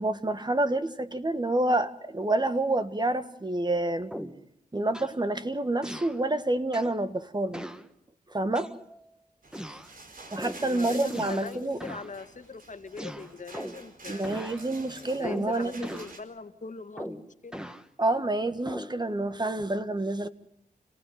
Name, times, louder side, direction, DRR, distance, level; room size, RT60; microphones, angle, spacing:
voice 1, 0.0-4.1 4.7-7.6 8.3-8.7 10.3-11.8 14.1-15.8 18.0-20.3, right 2 dB, 30° right, 10 dB, 1.6 m, -28 dB
sound 1, 4.1-4.5 4.9-5.2 5.8-6.2 6.7-7.0 7.5-7.9 8.6-9.1 9.5-9.9 10.4-10.7 11.1-11.6 11.8-12.1 13.0-13.9 14.2-14.6 15.2-15.5 15.8-16.2 17.0-17.9 18.7-19.0, equal, 5° right, 1.6 m, -39 dB
sound 2, 9.4-16.2, right 3 dB, 65° right, 4.1 m, -48 dB
voice 2, 10.6-17.6, left 4 dB, 55° left, 9 dB, 2.0 m, -41 dB
28.5 x 16.5 x 9.4 m, 0.78 s
cardioid pair, 60°, 16 cm